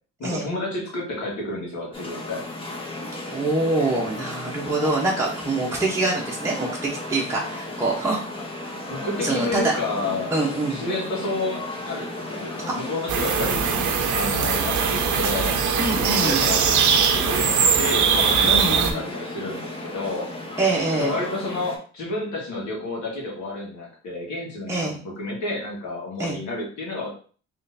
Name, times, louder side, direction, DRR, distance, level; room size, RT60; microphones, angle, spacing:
voice 1, 0.2-2.4 8.9-10.3 10.7-13.7 14.1-15.6 15.9-20.3 20.9-27.1, left 2 dB, 70° left, -3 dB, 1.8 m, -30 dB
sound 1, 1.9-21.8, left 1 dB, 20° left, 1.0 m, -34 dB
voice 2, 3.3-8.2 9.2-9.7 10.3-10.8 12.7-12.8 15.8-16.5 18.4-19.0 20.6-21.2 24.7-24.9 26.2-26.4, right 2 dB, 10° right, -4 dB, 0.9 m, -25 dB
sound 2, 13.1-18.9, right 6 dB, 75° right, 0.7 m, -21 dB
3.8 x 3.2 x 2.7 m, 0.42 s
cardioid pair, 90°, 30 cm